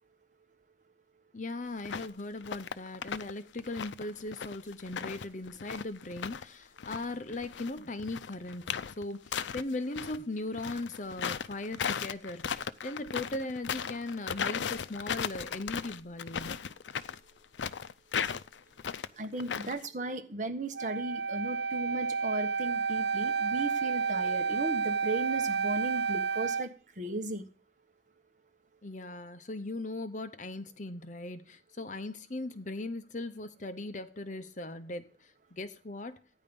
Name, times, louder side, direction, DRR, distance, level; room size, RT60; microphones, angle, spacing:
voice 1, 1.3-16.6 28.8-36.2, left 2 dB, 45° left, 0.9 m, -39 dB
sound 1, 1.8-2.1 2.4-3.3 3.6-6.4 6.8-10.2 10.5-19.9, left 7 dB, 85° left, 0.5 m, -36 dB
voice 2, 19.2-27.5, right 2 dB, 45° right, 1.4 m, -36 dB
Wind instrument woodwind instrument, 20.7-26.7, right 5 dB, 65° right, 0.6 m, -31 dB
14.5 x 9.8 x 5.4 m
head